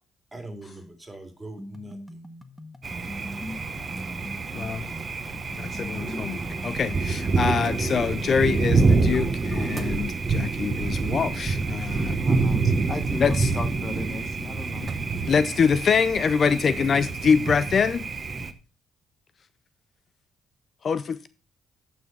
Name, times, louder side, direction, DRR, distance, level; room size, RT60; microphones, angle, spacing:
voice 1, 0.3-2.2, right 1 dB, 15° right, 2.9 m, -42 dB
sound 1, 1.6-9.6, equal, 5° left, 1.0 m, -40 dB
Thunder, 2.8-18.5, right 4 dB, 35° right, 1.1 m, -27 dB
voice 2, 4.5-4.9 5.5-12.2 13.2-13.5 15.3-18.1 20.8-21.3, left 6 dB, 50° left, 0.5 m, -24 dB
voice 3, 12.2-15.2 16.7-16.8, left 3 dB, 30° left, 1.1 m, -36 dB
9.2 x 6.1 x 5.5 m
cardioid pair, 90°, 0 cm